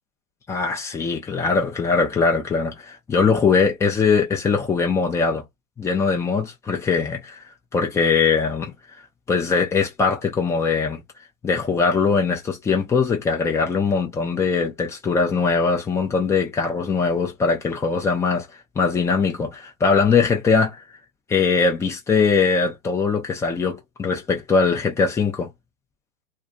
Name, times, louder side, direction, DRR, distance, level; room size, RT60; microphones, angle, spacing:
voice 1, 0.5-5.4 5.8-7.4 7.7-8.7 9.3-11.0 11.4-18.5 18.8-20.8 21.3-25.5, left 5 dB, 5° left, 0.5 m, -21 dB
2.3 x 2.3 x 2.6 m
hypercardioid pair, 120°, 40 cm